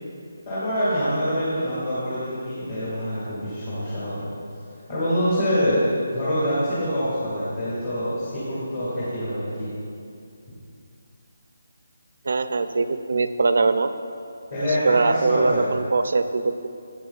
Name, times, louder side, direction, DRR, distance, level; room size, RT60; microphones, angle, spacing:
voice 1, 0.4-4.3 4.9-5.8 6.1-9.7 14.5-15.7, equal, 30° left, -12 dB, 2.3 m, -25 dB
voice 2, 12.3-13.9 14.8-16.7, right 3 dB, 55° right, 10 dB, 0.4 m, -22 dB
12.5 x 8.7 x 2.4 m, 2.4 s
hypercardioid pair, 175°, 0 cm